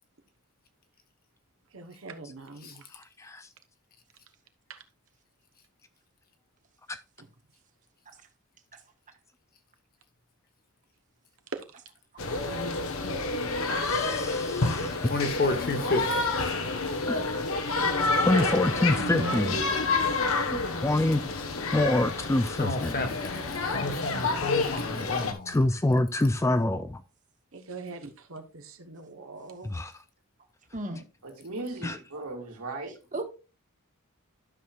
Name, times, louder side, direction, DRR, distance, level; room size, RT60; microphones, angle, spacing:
voice 1, 1.7-2.9 4.7-4.8 7.2-7.3 11.5-11.8 27.5-29.7, right 3 dB, 60° right, 1.1 m, -42 dB
voice 2, 2.9-3.5 6.9-7.0 13.8-15.1 17.1-17.5 18.3-19.6 20.5-21.4 21.7-22.9 25.5-27.0 29.6-29.9 31.8-32.0, left 1 dB, 15° left, 0.3 m, -26 dB
sound 1, 12.2-25.3, left 3 dB, 65° left, 1.1 m, -29 dB
voice 3, 14.3-15.0 18.1-18.5 31.2-32.9, right 3 dB, 80° right, 2.5 m, -37 dB
voice 4, 15.0-16.3 22.6-25.6, left 2 dB, 40° left, 1.3 m, -31 dB
voice 5, 19.0-19.6 30.7-31.0 32.1-32.2 33.1-33.2, right 1 dB, 35° right, 1.2 m, -35 dB
12.5 x 6.2 x 2.4 m
head